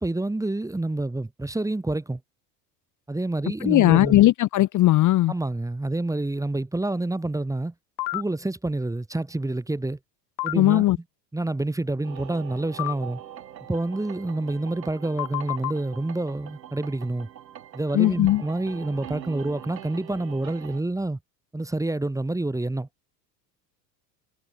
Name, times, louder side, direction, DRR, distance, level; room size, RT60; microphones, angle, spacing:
voice 1, 0.0-2.2 3.1-4.2 5.3-7.7 8.1-10.0 10.4-10.8 11.3-13.2 13.7-17.3 17.7-21.2 21.5-22.9, right 2 dB, 5° right, 1.3 m, -28 dB
voice 2, 3.6-5.3 10.5-11.0 17.9-18.4, left 15 dB, 40° left, 0.8 m, -18 dB
sound 1, 8.0-8.2 10.4-10.5 12.8-12.9 15.2-15.7, left 21 dB, 75° left, 0.7 m, -28 dB
sound 2, 12.0-20.8, right 10 dB, 90° right, 5.7 m, -43 dB
hypercardioid pair, 85°, 49 cm